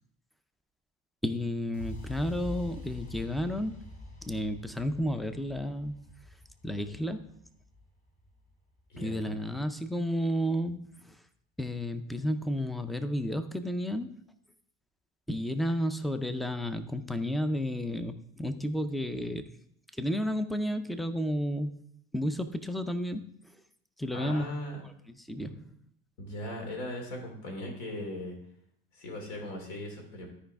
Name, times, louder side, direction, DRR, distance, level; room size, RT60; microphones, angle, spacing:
voice 1, 1.2-3.9 4.2-6.0 6.6-7.3 9.0-11.2 11.6-14.2 15.3-19.5 20.0-21.8 22.1-23.3 24.0-24.5 25.1-25.7, equal, ahead, 10 dB, 0.4 m, -32 dB
sound 1, 1.7-9.7, left 2 dB, 25° left, 1.3 m, -46 dB
voice 2, 8.9-9.4 24.1-24.8 26.2-28.4 28.9-30.3, left 1 dB, 70° left, 2 dB, 2.9 m, -38 dB
12.5 x 4.9 x 3.4 m, 0.71 s
cardioid pair, 130°, 29 cm